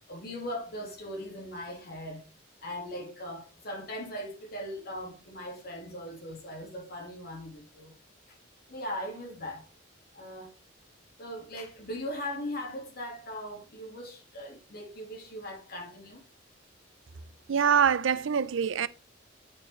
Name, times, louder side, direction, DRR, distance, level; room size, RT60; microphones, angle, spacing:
voice 1, 0.1-2.2 2.6-7.9 8.3-8.4 8.7-9.7 10.1-10.6 11.2-16.2, left 1 dB, 50° left, 1.9 m, -39 dB
voice 2, 17.5-18.9, right 7 dB, 75° right, 0.5 m, -24 dB
8.7 x 4.6 x 3.1 m
head